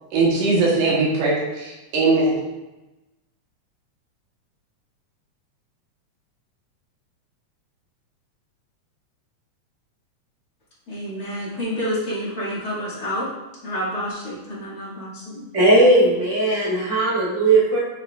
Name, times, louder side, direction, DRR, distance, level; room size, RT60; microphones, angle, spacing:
voice 1, 0.1-2.4, right 3 dB, 80° right, -4 dB, 2.9 m, -20 dB
voice 2, 10.9-13.3 13.6-15.4, equal, 30° left, -8 dB, 2.6 m, -29 dB
voice 3, 15.5-17.8, right 2 dB, 25° right, -6 dB, 2.1 m, -17 dB
8.4 x 6.1 x 2.6 m, 1.0 s
omnidirectional pair, 3.5 m